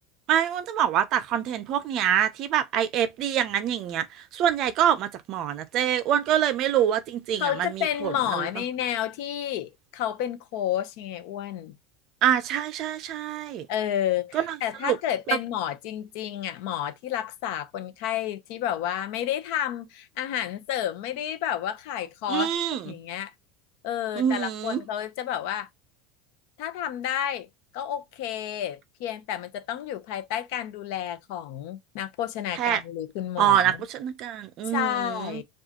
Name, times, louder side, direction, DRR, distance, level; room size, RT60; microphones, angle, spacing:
voice 1, 0.3-4.1 4.3-8.5 12.2-13.7 14.3-14.5 14.8-15.0 22.3-22.8 24.1-24.8 32.5-32.8 33.4-35.4, right 10 dB, 35° right, 0.5 m, -25 dB
voice 2, 7.4-11.7 13.7-22.5 22.8-23.3 23.8-25.7 26.6-27.5 27.7-33.8 34.7-35.4, left 11 dB, 55° left, 0.7 m, -30 dB
4.9 x 2.4 x 2.8 m
supercardioid pair, 175°, 0 cm